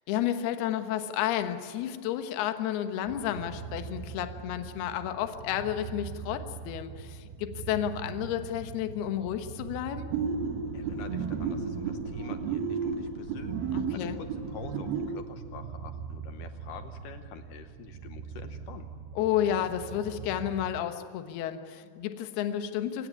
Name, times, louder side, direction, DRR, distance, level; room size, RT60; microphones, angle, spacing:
voice 1, 0.1-10.1 13.7-14.2 19.1-23.1, left 11 dB, 70° left, 8 dB, 3.0 m, -31 dB
sound 1, 3.0-20.8, right 7 dB, 80° right, 3.2 m, -43 dB
sound 2, 10.1-15.2, right 5 dB, 65° right, 3.1 m, -32 dB
voice 2, 10.7-18.9, left 8 dB, 85° left, 8 dB, 1.8 m, -47 dB
27.5 x 17.0 x 9.7 m, 2.2 s
omnidirectional pair, 5.2 m